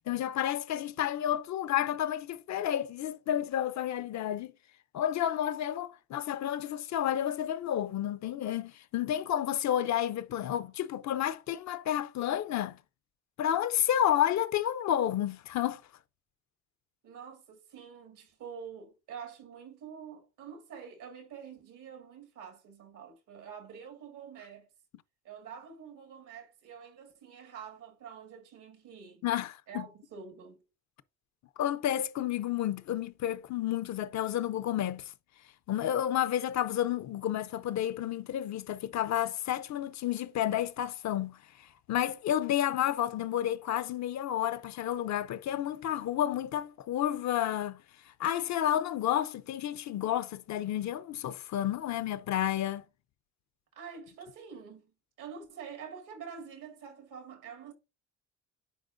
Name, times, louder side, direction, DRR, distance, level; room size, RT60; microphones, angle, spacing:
voice 1, 0.1-4.5 4.9-12.8 13.4-15.8 29.2-29.8 31.6-35.1 35.7-47.8 48.2-52.8, left 11 dB, 65° left, 0.6 m, -31 dB
voice 2, 17.0-24.7 25.2-29.2 29.7-30.6 53.7-57.7, right 7 dB, 85° right, 2.0 m, -47 dB
9.9 x 4.4 x 2.6 m
cardioid pair, 90°, 30 cm